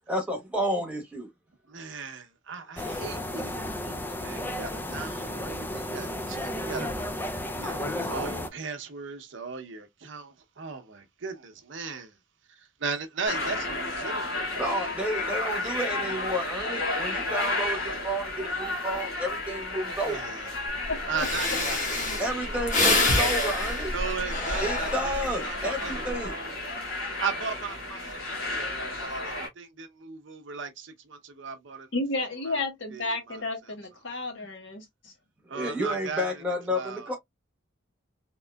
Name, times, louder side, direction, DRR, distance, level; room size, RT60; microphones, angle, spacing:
voice 1, 0.1-1.3 14.0-20.3 22.2-23.9 24.6-26.3 35.5-37.2, equal, 5° right, 1.0 m, -31 dB
voice 2, 1.7-7.2 7.6-12.2 12.5-14.7 15.1-16.3 20.0-20.5 21.1-23.2 23.9-24.9 25.2-31.9 32.4-32.6 32.9-33.5 35.5-36.4 36.7-37.2, right 5 dB, 65° right, 0.7 m, -38 dB
sound 1, 2.8-8.5, left 1 dB, 10° left, 0.3 m, -33 dB
sound 2, 13.3-29.5, left 2 dB, 85° left, 2.1 m, -32 dB
Breathing, 20.8-20.9 21.2-25.4 25.9-26.3, left 2 dB, 40° left, 1.2 m, -27 dB
voice 3, 20.9-21.2 21.9-22.2 31.9-35.1, left 2 dB, 65° left, 1.3 m, -32 dB
3.6 x 2.9 x 2.2 m
head